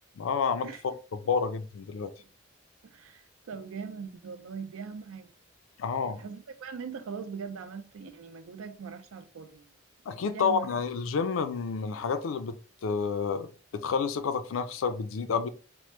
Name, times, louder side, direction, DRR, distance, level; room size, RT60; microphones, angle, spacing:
voice 1, 0.2-0.7 1.2-2.1 5.8-6.2 10.1-12.5 12.8-15.5, left 5 dB, 85° left, 0.4 m, -29 dB
voice 2, 2.8-5.3 6.0-9.7 10.1-10.8, right 5 dB, 90° right, 0.4 m, -41 dB
3.0 x 2.0 x 3.1 m
head